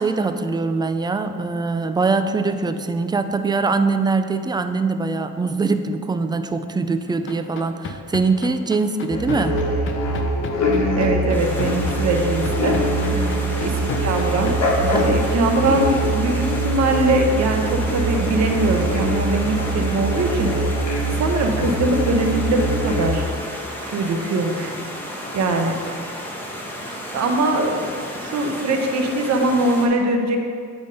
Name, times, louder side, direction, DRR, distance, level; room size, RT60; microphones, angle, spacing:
voice 1, 0.0-9.6 13.1-13.4 14.8-15.1, right 4 dB, 15° right, 8 dB, 0.4 m, -23 dB
sound 1, 7.1-14.5, left 6 dB, 45° left, 0.6 m, -31 dB
sound 2, 9.1-23.1, right 1 dB, 60° left, 1.3 m, -23 dB
voice 2, 11.0-12.8 13.2-13.3 13.6-14.7 15.0-20.5 21.1-23.3 23.8-24.7 25.3-25.8 27.1-27.9 28.2-30.5, right 2 dB, 60° right, 3 dB, 1.0 m, -22 dB
Stream, 11.3-29.9, equal, 5° left, 1.3 m, -33 dB
8.3 x 3.6 x 5.3 m, 2.1 s
cardioid pair, 90°, 30 cm